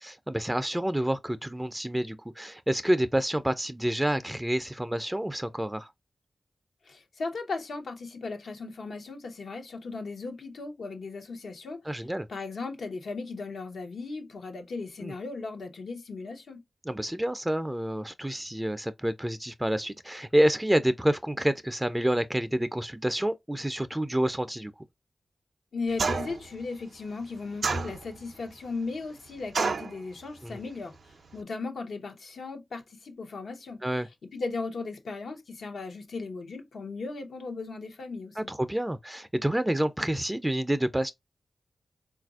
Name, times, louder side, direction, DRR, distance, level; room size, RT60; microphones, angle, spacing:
voice 1, 0.0-5.9 11.9-12.3 15.0-15.1 16.9-24.7 30.4-30.6 33.8-34.1 38.4-41.1, right 1 dB, 15° right, 0.3 m, -28 dB
voice 2, 6.8-11.8 12.3-16.6 25.7-31.0 31.3-33.8 34.2-38.5, left 3 dB, 80° left, 0.8 m, -37 dB
sound 1, 26.0-26.5 27.6-28.3 29.5-30.0, right 4 dB, 80° right, 0.4 m, -28 dB
3.9 x 2.4 x 2.3 m
cardioid pair, 50°, 0 cm